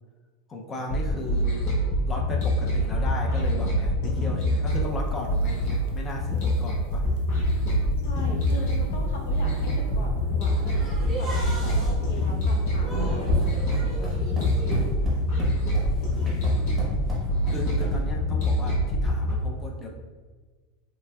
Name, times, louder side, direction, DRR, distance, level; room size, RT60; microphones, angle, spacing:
voice 1, 0.5-1.7 2.1-7.1 8.3-8.7 15.9-16.6 17.5-19.9, left 1 dB, 20° left, 1 dB, 0.4 m, -36 dB
sound 1, 0.9-19.3, equal, 55° left, 1.0 m, -25 dB
sound 2, 5.1-14.4, right 2 dB, 70° right, 0.5 m, -40 dB
voice 2, 8.0-10.6 11.0-13.5 13.8-15.0, left 1 dB, 70° left, 0 dB, 0.6 m, -40 dB
sound 3, 10.6-18.0, left 1 dB, 10° right, 0.8 m, -33 dB
3.2 x 3.0 x 2.2 m, 1.4 s
supercardioid pair, 165°, 0 cm